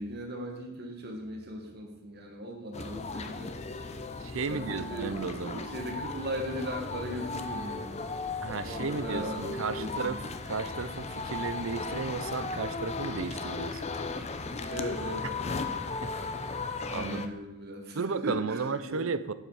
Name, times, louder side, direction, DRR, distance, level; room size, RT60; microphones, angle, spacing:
voice 1, 0.0-3.6 4.4-8.1 8.6-10.2 14.7-15.7 16.9-19.2, equal, 50° right, 2 dB, 1.6 m, -38 dB
sound 1, 2.7-17.3, left 3 dB, 30° left, 0.7 m, -36 dB
voice 2, 4.2-5.7 8.4-13.8 16.0-16.1 16.9-17.3 17.9-19.3, right 5 dB, 75° right, 14 dB, 0.6 m, -34 dB
12.0 x 7.8 x 4.8 m, 1.0 s
head